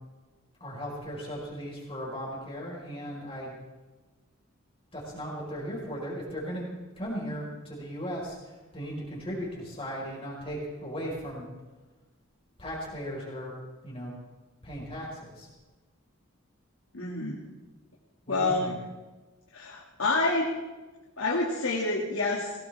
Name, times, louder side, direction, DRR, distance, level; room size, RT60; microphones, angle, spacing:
voice 1, 0.6-3.6 4.9-6.7 7.0-8.4 8.7-11.5 12.6-13.5 13.8-14.1 14.6-15.5 18.2-18.8, equal, 25° left, -4 dB, 5.2 m, -37 dB
voice 2, 16.9-17.4 18.3-18.7 19.5-20.5 21.2-22.5, left 2 dB, 80° left, -3 dB, 2.5 m, -28 dB
21.0 x 18.5 x 3.7 m, 1.2 s
head